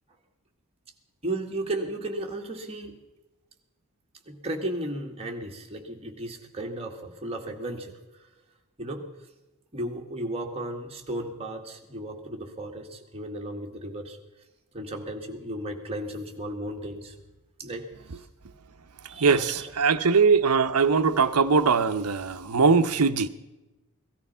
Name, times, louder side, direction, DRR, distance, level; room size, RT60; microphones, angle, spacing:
voice 1, 1.2-3.0 4.3-7.9 8.8-9.0 9.7-14.2 14.7-17.1 17.6-17.9 18.1-18.2 19.1-19.7, right 1 dB, 30° right, 2.0 m, -34 dB
voice 2, 19.2-23.3, right 5 dB, 85° right, 0.8 m, -21 dB
17.5 x 13.5 x 5.6 m
head